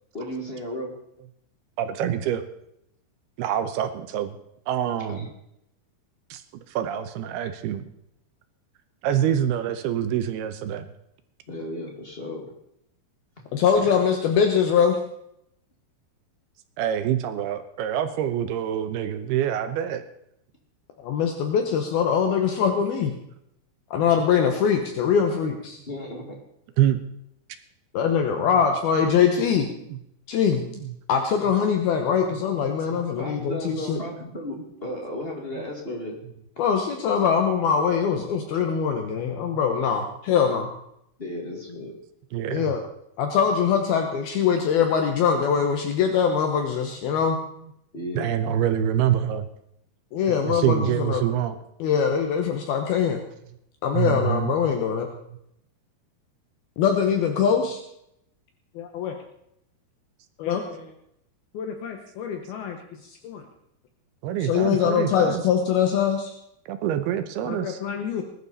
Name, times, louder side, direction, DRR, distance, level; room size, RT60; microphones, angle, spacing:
voice 1, 0.1-0.9 5.1-5.3 11.5-12.5 25.9-26.2 33.2-36.2 41.2-41.9 47.9-48.3, left 1 dB, 30° left, 0 dB, 1.1 m, -34 dB
voice 2, 1.8-2.5 3.4-4.4 4.7-5.3 6.3-6.4 6.7-7.8 9.0-10.9 16.8-20.0 26.8-27.0 28.4-28.5 29.8-30.0 30.7-30.9 32.9-33.2 39.5-39.6 42.3-42.7 48.2-49.5 50.3-51.6 53.9-54.5 64.2-65.4 66.7-67.8, right 10 dB, 75° right, 9 dB, 2.7 m, -26 dB
voice 3, 13.5-15.0 21.0-23.1 23.9-25.8 27.9-29.7 30.3-30.6 31.1-34.0 36.6-40.7 42.5-42.8 43.2-47.4 50.1-51.2 51.8-53.2 53.8-55.1 56.8-57.8 58.8-59.1 60.4-60.6 61.5-62.8 63.2-63.4 64.4-66.3 67.5-68.2, left 7 dB, 70° left, 5 dB, 2.8 m, -23 dB
20.0 x 11.5 x 4.2 m, 0.77 s
omnidirectional pair, 4.9 m